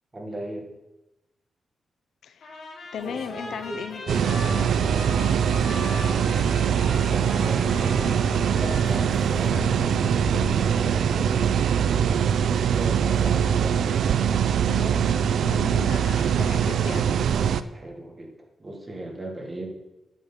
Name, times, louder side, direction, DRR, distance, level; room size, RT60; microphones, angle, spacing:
voice 1, 0.1-0.7 5.9-6.4 6.7-8.0 8.4-12.3 12.7-13.8 17.7-18.3 18.6-19.7, right 1 dB, 20° right, 1 dB, 1.6 m, -38 dB
Trumpet, 2.4-10.1, left 3 dB, 60° left, 2.8 m, -40 dB
voice 2, 2.9-4.1 14.7-17.1, left 8 dB, 80° left, 11 dB, 0.5 m, -37 dB
Microwave oven, 2.9-10.4, left 1 dB, 30° left, 4.1 m, -40 dB
sound 1, 4.1-17.6, right 8 dB, 75° right, 0.4 m, -22 dB
8.9 x 6.7 x 5.6 m, 0.96 s
wide cardioid pair, 175°, 0 cm